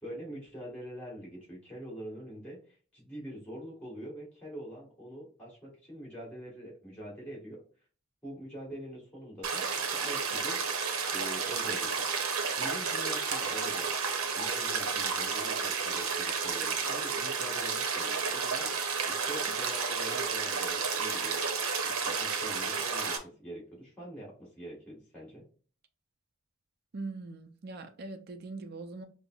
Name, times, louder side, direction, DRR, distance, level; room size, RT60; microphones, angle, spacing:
voice 1, 0.0-7.6 8.2-10.6 11.1-12.0 12.6-13.9 14.3-25.4, right 1 dB, 5° left, 1.5 m, -44 dB
sound 1, 9.4-23.2, right 5 dB, 90° right, 0.7 m, -31 dB
voice 2, 26.9-29.0, right 3 dB, 45° right, 0.4 m, -41 dB
5.2 x 2.0 x 2.3 m
head